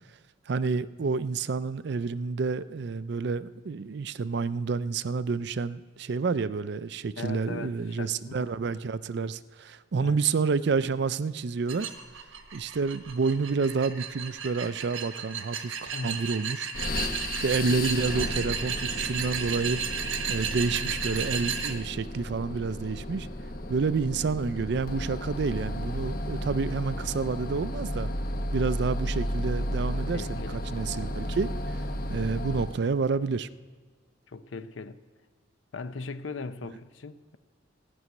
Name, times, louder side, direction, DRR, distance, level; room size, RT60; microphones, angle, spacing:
voice 1, 0.5-11.9 12.5-16.7 17.4-19.8 20.3-23.3 23.7-28.1 28.5-31.5 32.1-33.5, right 4 dB, 60° right, 0.4 m, -29 dB
voice 2, 7.2-8.6 10.0-10.2 15.9-16.3 30.1-30.6 34.3-35.0 35.7-37.4, left 3 dB, 80° left, 0.7 m, -39 dB
sound 1, 11.7-21.7, right 7 dB, 90° right, 1.2 m, -34 dB
sound 2, 16.7-32.9, left 1 dB, 50° left, 1.0 m, -33 dB
15.5 x 6.3 x 9.4 m
head